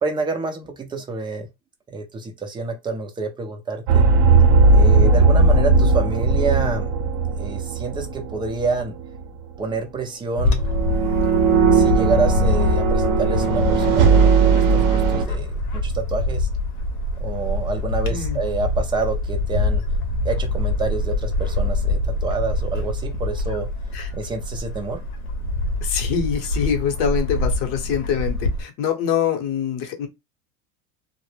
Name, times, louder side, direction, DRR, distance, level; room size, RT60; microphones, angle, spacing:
voice 1, 0.0-1.5 1.9-4.1 4.7-6.9 7.4-8.9 9.6-10.6 11.7-16.5 17.2-19.8 20.2-23.7 24.1-25.0, right 4 dB, 10° right, 0.4 m, -27 dB
sound 1, 3.9-8.7 9.0-9.2 10.7-15.2, right 4 dB, 50° right, 0.6 m, -17 dB
Bird / Wind, 10.4-28.6, left 2 dB, 85° left, 0.8 m, -24 dB
voice 2, 18.1-18.4 23.9-24.1 25.8-30.1, left 8 dB, 50° left, 0.8 m, -24 dB
2.0 x 2.0 x 3.2 m
hypercardioid pair, 100°, 44 cm